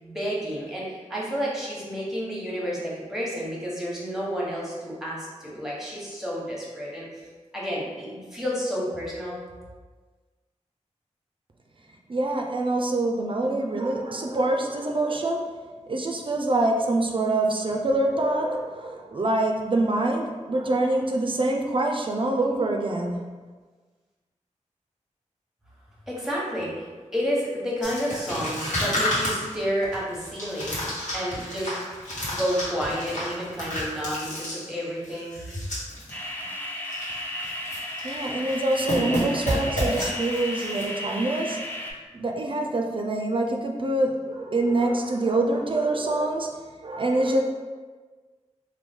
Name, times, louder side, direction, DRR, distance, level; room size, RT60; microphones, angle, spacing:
voice 1, 0.0-7.3 7.5-9.4 26.1-30.9 31.1-31.7 32.3-35.6, equal, 5° right, -5 dB, 1.0 m, -30 dB
voice 2, 12.1-15.5 15.9-23.3 38.0-41.6 42.1-47.4, right 2 dB, 45° right, 1 dB, 0.4 m, -25 dB
sound 1, 27.8-36.1 36.4-36.5 36.8-37.1 37.4-38.2 38.5-40.8, equal, 75° left, 1.1 m, -30 dB
sound 2, 36.1-41.9, left 1 dB, 15° left, 0.6 m, -34 dB
3.0 x 2.2 x 3.5 m, 1.4 s
cardioid pair, 55°, 13 cm